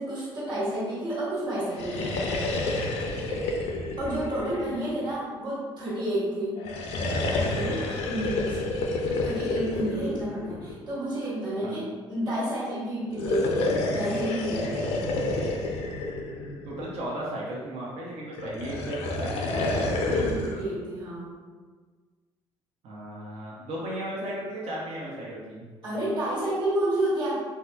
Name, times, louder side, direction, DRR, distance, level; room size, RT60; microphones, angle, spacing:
voice 1, 0.0-2.2 4.0-6.6 7.3-8.9 9.2-15.2 20.2-21.3 25.8-27.4, right 1 dB, 40° right, -8 dB, 1.3 m, -30 dB
sound 1, 1.6-5.3 6.6-10.9 13.1-17.1 18.4-20.6, left 2 dB, 75° left, 0.5 m, -29 dB
voice 2, 16.6-20.3 22.8-25.7, right 1 dB, 70° right, -4 dB, 0.7 m, -36 dB
3.3 x 2.7 x 2.2 m, 1.5 s
supercardioid pair, 65°, 11 cm